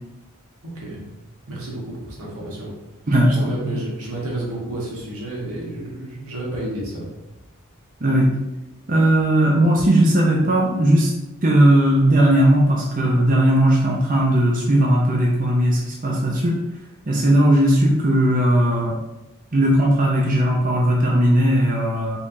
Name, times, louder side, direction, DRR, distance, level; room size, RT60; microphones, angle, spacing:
voice 1, 0.6-1.1 1.5-2.7 3.3-7.1, right 1 dB, 90° right, -4 dB, 1.5 m, -30 dB
voice 2, 3.1-3.5 8.0-8.3 8.9-11.1 11.4-16.6 17.1-18.9 19.5-22.2, right 1 dB, 40° right, -3 dB, 0.7 m, -17 dB
5.4 x 3.3 x 2.7 m, 1.0 s
head